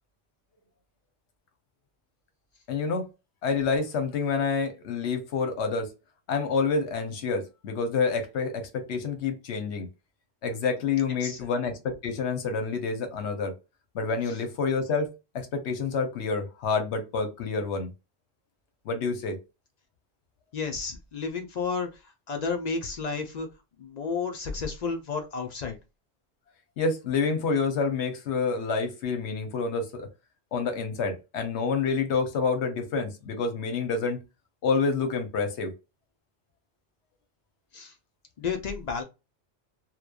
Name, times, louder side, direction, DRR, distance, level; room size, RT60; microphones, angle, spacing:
voice 1, 2.7-3.1 3.4-5.9 6.3-9.9 10.4-13.5 13.9-17.9 18.9-19.4 26.8-30.1 30.5-34.2 34.6-35.7, left 4 dB, 75° left, 1.0 m, -28 dB
voice 2, 20.5-22.0 22.3-23.5 23.8-25.8 37.7-37.9 38.4-39.0, left 5 dB, 55° left, 0.4 m, -32 dB
3.0 x 2.1 x 2.3 m
omnidirectional pair, 1.2 m